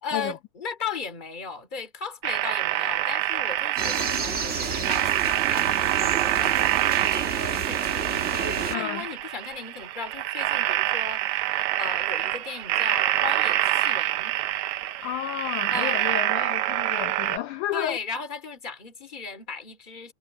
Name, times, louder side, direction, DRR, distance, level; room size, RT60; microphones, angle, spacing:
voice 1, 0.0-14.3 15.7-16.1 17.7-20.1, left 5 dB, 15° left, 2.3 m, -37 dB
sound 1, 2.2-17.4, right 15 dB, 75° right, 1.7 m, -26 dB
sound 2, 3.8-8.7, right 5 dB, 60° right, 0.7 m, -30 dB
voice 2, 8.7-9.1 15.0-18.0, left 12 dB, 75° left, 2.0 m, -31 dB
omnidirectional pair, 4.0 m